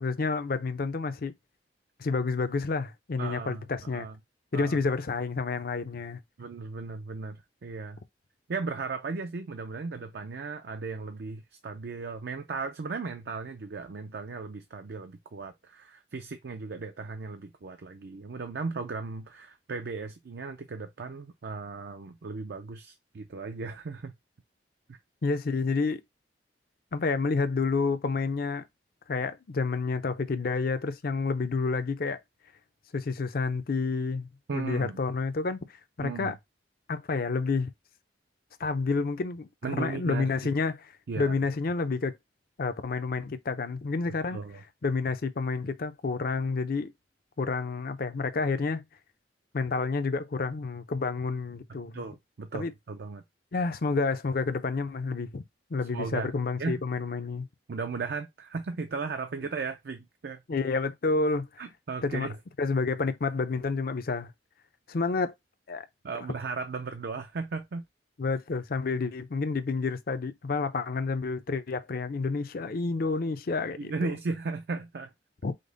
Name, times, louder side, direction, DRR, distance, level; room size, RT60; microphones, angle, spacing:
voice 1, 0.0-1.3 2.0-4.1 4.5-6.2 25.2-26.0 26.9-28.6 29.1-32.2 32.9-35.6 36.0-36.3 36.9-37.7 38.6-42.1 42.6-44.4 44.8-46.9 47.4-48.8 49.5-52.0 52.5-52.7 53.5-55.4 55.7-57.5 60.5-61.5 62.0-62.3 62.6-64.3 64.9-65.3 65.7-65.9 68.2-74.1 75.4-75.5, left 4 dB, 55° left, 0.5 m, -29 dB
voice 2, 3.2-3.6 3.9-4.2 4.5-4.8 6.4-8.0 8.5-24.1 24.9-25.0 34.5-35.0 36.0-36.4 39.6-40.3 41.1-41.3 44.3-44.6 51.9-53.2 55.9-56.3 56.6-56.8 57.7-60.4 61.6-62.4 66.0-67.8 73.8-75.1, right 4 dB, 65° right, 0.5 m, -36 dB
5.2 x 2.1 x 3.8 m
head